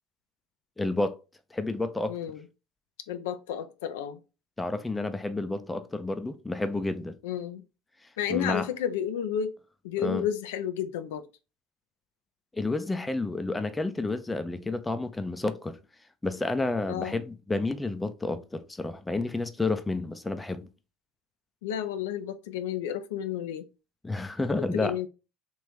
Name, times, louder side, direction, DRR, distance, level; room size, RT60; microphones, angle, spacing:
voice 1, 0.8-1.2 1.5-2.2 4.6-7.2 8.3-8.7 10.0-10.2 12.5-15.8 16.2-20.7 24.0-25.0, left 2 dB, 15° left, 0.5 m, -30 dB
voice 2, 2.1-2.5 3.1-4.2 7.2-7.6 8.2-9.6 9.8-11.3 16.9-17.2 21.6-23.7 24.5-25.1, left 9 dB, 80° left, 0.4 m, -32 dB
3.1 x 2.5 x 3.4 m
hypercardioid pair, 80°, 0 cm